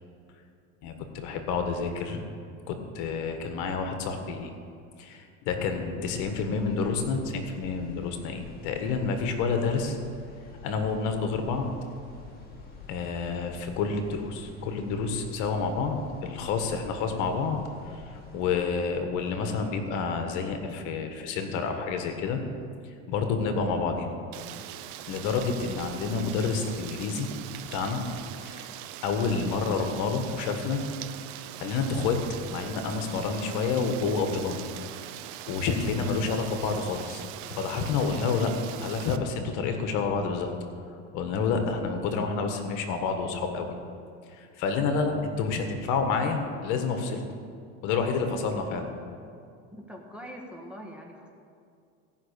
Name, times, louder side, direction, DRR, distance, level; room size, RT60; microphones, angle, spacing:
voice 1, 0.8-2.2 2.7-4.6 5.0-10.0 10.6-11.7 12.9-17.6 17.8-22.4 22.8-24.1 25.1-27.3 27.7-28.0 28.4-28.7 29.0-30.8 31.6-32.2 32.5-34.6 35.0-38.5 38.8-40.5 41.1-43.7 44.3-47.2 47.8-48.9, left 5 dB, 65° left, 5 dB, 1.5 m, -29 dB
sound 1, 6.0-18.6, left 4 dB, 30° left, 2.4 m, -48 dB
Rain, 24.3-39.2, right 13 dB, 70° right, 0.7 m, -42 dB
voice 2, 49.7-51.3, equal, 5° right, 0 dB, 1.6 m, -43 dB
16.5 x 5.6 x 6.7 m, 2.4 s
supercardioid pair, 115°, 33 cm